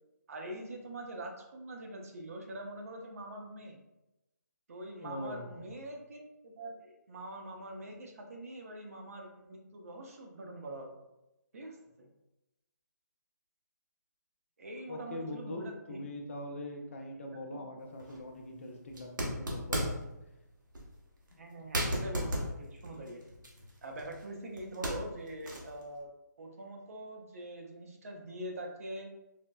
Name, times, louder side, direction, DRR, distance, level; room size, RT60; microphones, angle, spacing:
voice 1, 0.3-3.8 4.7-11.0 11.5-12.1 14.6-16.1 17.5-17.7 21.4-23.2 23.8-26.1 26.4-29.1, right 1 dB, 50° right, 2 dB, 0.6 m, -44 dB
voice 2, 5.0-5.6 14.9-19.9 21.3-21.4, left 1 dB, 45° left, 2 dB, 0.5 m, -42 dB
sound 1, 18.0-18.2 18.9-20.1 20.7-20.9 21.3-21.4 21.7-24.3 24.6-25.8, equal, 80° right, 0.9 m, -35 dB
4.0 x 2.1 x 2.2 m, 0.94 s
figure-of-eight pair, 155°, 10 cm